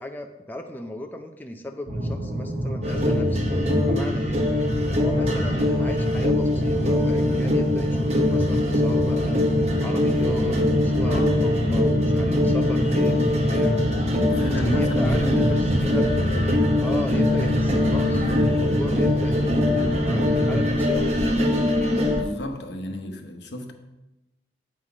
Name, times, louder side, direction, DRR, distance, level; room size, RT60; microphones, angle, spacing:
voice 1, 0.0-3.4 3.9-4.4 4.8-9.5 9.8-13.8 14.4-16.4 16.8-21.8, left 1 dB, 10° left, 4 dB, 0.5 m, -36 dB
sound 1, 1.9-20.7, right 1 dB, 60° right, 1.7 m, -28 dB
sound 2, 2.8-22.2, left 1 dB, 35° right, 1.0 m, -23 dB
voice 2, 11.0-11.4 14.2-15.7 22.1-23.7, left 1 dB, 85° left, 6 dB, 0.9 m, -32 dB
8.0 x 5.7 x 4.8 m, 0.97 s
head